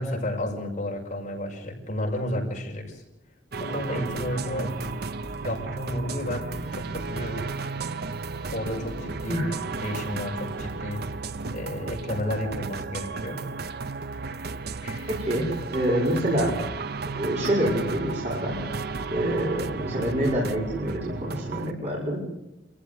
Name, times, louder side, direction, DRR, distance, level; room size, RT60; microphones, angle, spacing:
voice 1, 0.0-3.0 3.6-7.5 8.5-9.5 9.8-11.1 11.5-13.5 14.8-15.1, left 1 dB, 40° left, 0 dB, 6.7 m, -32 dB
sound 1, 3.5-21.7, right 4 dB, 55° right, 0.8 m, -34 dB
voice 2, 15.1-16.6 17.1-18.6 19.1-22.3, right 1 dB, 35° right, -5 dB, 6.0 m, -26 dB
28.0 x 15.5 x 8.1 m, 0.93 s
head